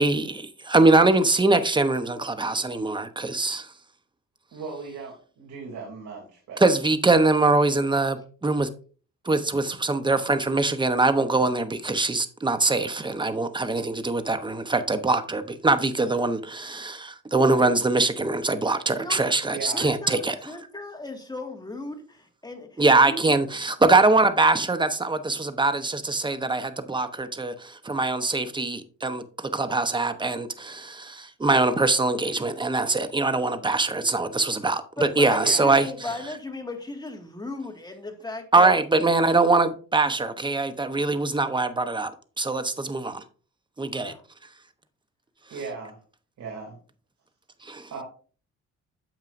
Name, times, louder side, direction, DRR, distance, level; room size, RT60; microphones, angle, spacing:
voice 1, 0.0-3.7 6.6-8.7 9.3-20.4 22.8-29.2 29.5-35.9 38.5-42.1 42.4-43.2 43.8-44.1 47.6-47.9, right 3 dB, 15° right, 0.9 m, -23 dB
voice 2, 4.5-6.6 19.5-19.9 35.4-35.8 36.0-36.2 45.5-46.0 46.4-46.8 47.9-48.0, right 4 dB, 65° right, 2.9 m, -37 dB
voice 3, 18.9-19.3 19.7-22.8 23.1-23.3 35.0-38.8 43.9-44.2, left 2 dB, 15° left, 1.9 m, -36 dB
9.2 x 7.3 x 2.6 m
cardioid pair, 90°, 30 cm